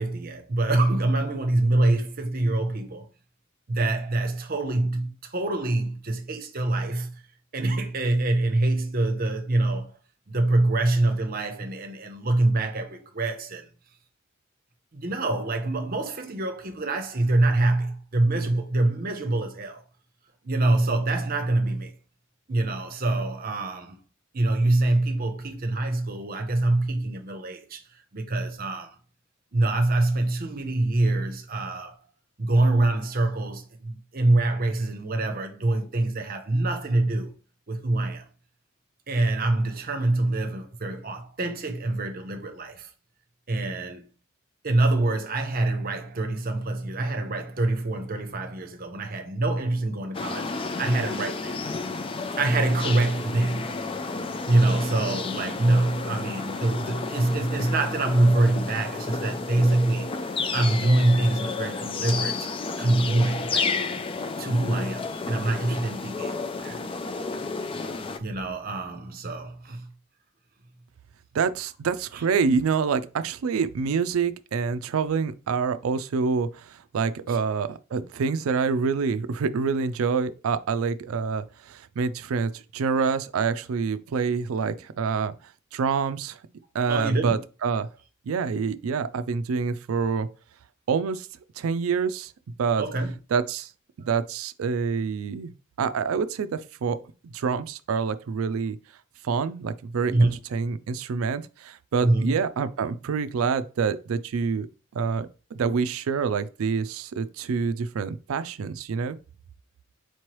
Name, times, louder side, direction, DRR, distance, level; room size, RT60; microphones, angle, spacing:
voice 1, 0.0-3.0 3.7-7.2 7.5-10.0 10.3-13.7 14.9-19.8 20.4-21.9 22.5-24.0 24.3-27.8 28.1-29.0 29.5-32.0 32.4-37.3 37.7-38.3 39.1-42.9 43.5-44.0 44.6-50.5 50.8-51.6 52.4-53.7 54.4-60.1 60.5-62.5 62.8-63.8 64.4-66.8 68.2-69.9 72.1-72.2 77.3-77.4 86.9-87.4 92.8-93.1 94.0-94.1 100.1-100.4 102.0-102.4, right 2 dB, 45° right, 0.7 m, -25 dB
sound 1, 50.1-68.2, left 4 dB, 25° left, 0.3 m, -31 dB
voice 2, 71.3-85.3 85.7-86.4 86.7-87.9 88.3-90.3 90.9-91.3 91.6-92.3 92.6-92.8 93.3-93.7 94.1-95.5 95.8-97.0 97.2-98.8 99.2-104.7 104.9-109.2, right 5 dB, 90° right, 0.4 m, -27 dB
4.5 x 3.1 x 3.0 m
head